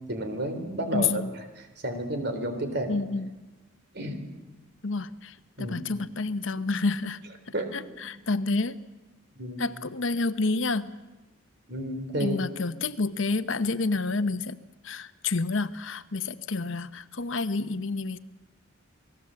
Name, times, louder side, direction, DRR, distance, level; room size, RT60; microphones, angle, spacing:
voice 1, 0.1-3.0 3.9-4.2 5.6-5.8 7.5-7.7 8.0-8.1 9.4-9.6 11.7-12.4, right 1 dB, 50° right, 7 dB, 3.8 m, -31 dB
voice 2, 0.9-1.3 2.9-3.3 4.8-7.2 7.7-8.8 9.6-10.9 12.2-14.6 14.8-18.2, left 3 dB, 70° left, 13 dB, 0.9 m, -29 dB
29.0 x 19.0 x 7.7 m, 1.1 s
head